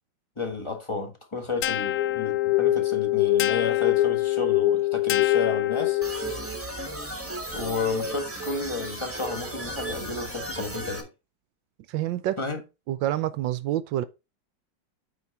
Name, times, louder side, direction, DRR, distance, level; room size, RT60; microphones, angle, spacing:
voice 1, 0.4-6.0 7.5-11.1 12.4-12.6, left 4 dB, 15° left, 1.1 m, -32 dB
sound 1, 1.6-6.4, left 15 dB, 75° left, 0.8 m, -23 dB
sound 2, 6.0-11.0, right 1 dB, 10° right, 1.0 m, -35 dB
voice 2, 11.9-12.4 12.9-14.0, right 13 dB, 75° right, 1.2 m, -27 dB
8.3 x 4.6 x 4.1 m
omnidirectional pair, 2.2 m